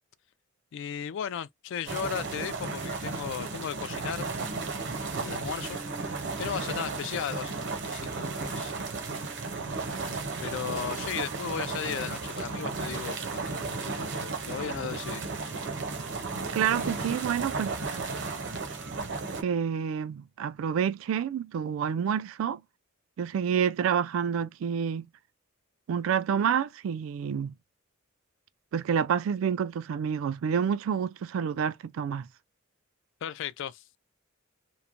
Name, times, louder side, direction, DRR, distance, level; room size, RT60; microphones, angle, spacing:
voice 1, 0.7-4.3 5.2-5.8 6.4-8.9 9.8-15.5 33.2-34.0, left 8 dB, 65° left, 0.3 m, -36 dB
sound 1, 1.9-19.4, right 4 dB, 60° right, 0.7 m, -34 dB
sound 2, 4.8-19.0, right 1 dB, 10° right, 0.5 m, -50 dB
voice 2, 16.5-17.8 19.4-22.6 23.2-25.1 25.9-27.5 28.7-32.3, right 7 dB, 80° right, 0.3 m, -28 dB
3.0 x 2.1 x 2.4 m
head